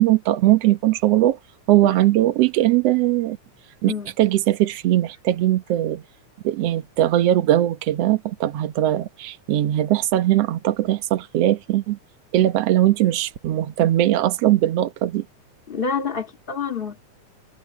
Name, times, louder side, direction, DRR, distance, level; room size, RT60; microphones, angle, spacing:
voice 1, 0.0-1.4 1.7-3.4 3.8-3.9 4.2-6.0 6.4-12.0 12.3-15.3, right 14 dB, 60° right, 2.0 m, -20 dB
voice 2, 15.7-17.0, left 5 dB, 20° left, 1.9 m, -28 dB
omnidirectional pair, 3.5 m